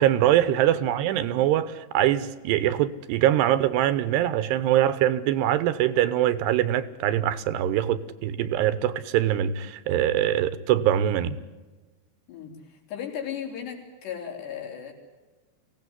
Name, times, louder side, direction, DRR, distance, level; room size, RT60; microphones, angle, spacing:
voice 1, 0.0-11.4, right 12 dB, 80° right, 3.0 m, -23 dB
voice 2, 12.3-14.9, left 8 dB, 75° left, 5.8 m, -36 dB
24.5 x 17.0 x 9.7 m
omnidirectional pair, 4.9 m